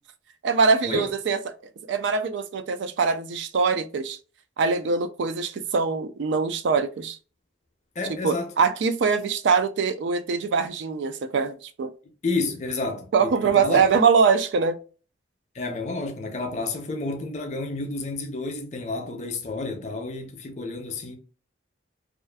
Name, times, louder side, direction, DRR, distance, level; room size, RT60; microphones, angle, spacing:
voice 1, 0.4-1.4 1.9-4.2 4.6-7.2 8.1-11.9 13.1-14.8, right 5 dB, 75° right, 0.4 m, -23 dB
voice 2, 8.0-8.5 12.2-13.8 15.5-21.2, left 3 dB, 35° left, 0.5 m, -30 dB
2.4 x 2.4 x 2.2 m
head